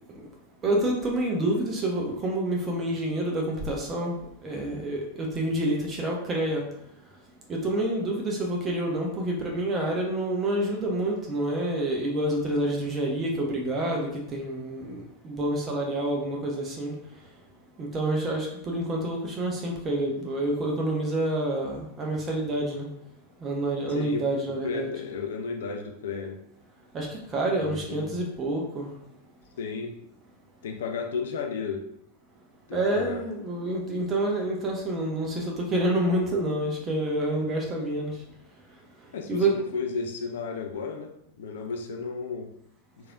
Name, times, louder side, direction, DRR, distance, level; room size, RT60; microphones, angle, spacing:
voice 1, 0.6-4.2 4.4-6.6 7.5-16.9 17.8-22.9 23.4-24.9 26.9-27.1 27.3-28.9 32.7-38.1 39.3-39.6, right 1 dB, 25° right, -1 dB, 0.8 m, -28 dB
voice 2, 23.9-24.3 24.6-26.4 27.6-28.2 29.6-30.0 30.6-31.8 32.7-33.2 39.1-42.5, left 5 dB, 60° left, 3 dB, 0.4 m, -33 dB
3.2 x 2.6 x 2.3 m, 0.75 s
figure-of-eight pair, 90°, 0 cm